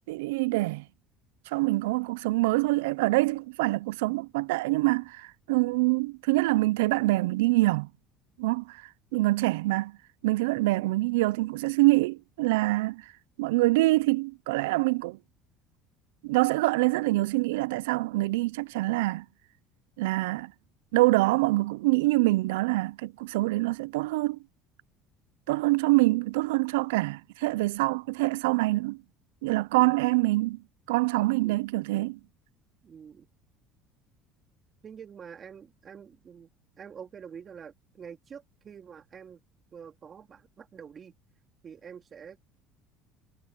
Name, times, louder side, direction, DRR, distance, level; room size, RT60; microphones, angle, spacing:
voice 1, 0.1-0.8 1.5-7.9 8.4-8.8 9.1-10.0 10.2-13.0 13.4-15.2 16.2-19.2 20.0-20.5 20.9-24.4 25.5-29.0 29.4-30.6 30.9-32.2, right 21 dB, 90° right, 0.4 m, -25 dB
voice 2, 32.8-33.3 34.8-36.5 36.8-39.4 39.7-41.1 41.6-42.5, right 7 dB, 35° right, 3.0 m, -46 dB
supercardioid pair, 100°, 0 cm